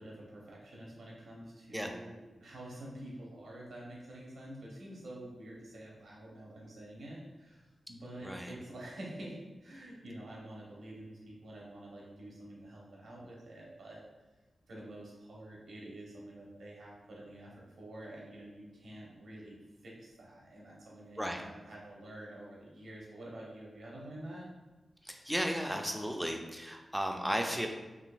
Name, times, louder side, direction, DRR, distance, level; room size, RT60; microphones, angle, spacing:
voice 1, 0.0-14.0 14.7-24.5, right 1 dB, 85° right, -4 dB, 1.0 m, -48 dB
voice 2, 8.2-8.5 21.2-21.4 25.0-27.7, equal, 5° right, 3 dB, 0.4 m, -34 dB
3.9 x 2.8 x 2.4 m, 1.2 s
wide cardioid pair, 85°, 0 cm